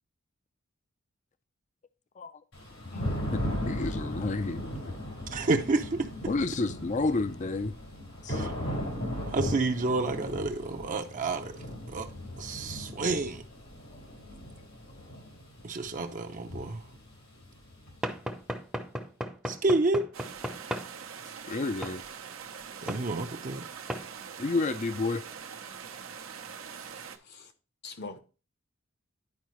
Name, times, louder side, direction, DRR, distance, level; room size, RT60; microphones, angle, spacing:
Thunder / Rain, 2.5-18.3, equal, 85° left, 3.3 m, -37 dB
voice 1, 3.6-4.9 6.3-7.8 8.2-8.4 21.5-22.0 24.4-25.2, left 3 dB, 35° left, 0.5 m, -30 dB
voice 2, 5.3-6.1 8.3-8.5 9.3-11.5 11.9-12.1 12.4-13.4 15.6-16.8 19.5-20.1 22.8-23.7, right 3 dB, 40° right, 0.6 m, -29 dB
Knock / Wood, 18.0-20.9 21.8-22.0 22.9-23.1 23.9-24.1, equal, 5° right, 0.7 m, -35 dB
sound 1, 20.1-27.2, right 7 dB, 90° right, 0.9 m, -43 dB
voice 3, 26.7-27.5 27.8-28.2, left 3 dB, 55° left, 1.0 m, -45 dB
10.5 x 4.7 x 3.1 m
head